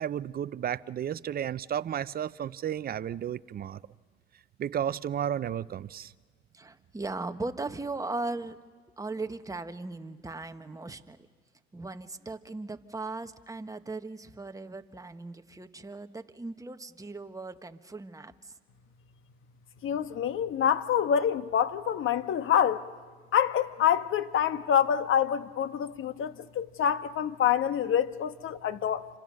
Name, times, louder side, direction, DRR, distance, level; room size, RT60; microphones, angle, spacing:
voice 1, 0.0-3.8 4.6-6.1, right 9 dB, 30° right, 0.7 m, -33 dB
voice 2, 6.5-8.6 9.0-11.2 11.7-18.5, right 3 dB, 10° right, 1.4 m, -38 dB
voice 3, 19.8-22.8 23.3-29.1, left 9 dB, 40° left, 1.5 m, -26 dB
29.5 x 26.0 x 6.5 m
hypercardioid pair, 90°, 33 cm